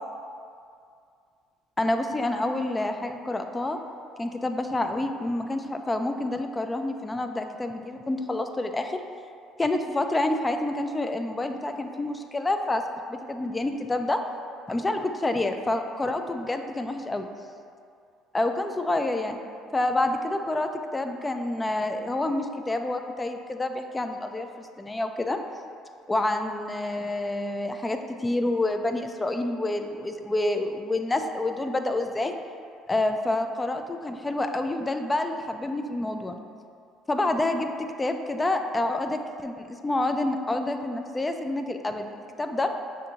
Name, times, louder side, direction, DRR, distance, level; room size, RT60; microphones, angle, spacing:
voice 1, 1.8-3.8 4.2-9.0 9.6-12.8 13.1-14.2 14.7-17.3 18.3-19.4 19.7-25.4 26.1-32.3 32.9-36.4 37.1-42.1 42.4-42.7, left 2 dB, 20° left, 6 dB, 0.3 m, -28 dB
6.4 x 2.6 x 2.8 m, 2.3 s
supercardioid pair, 85°, 0 cm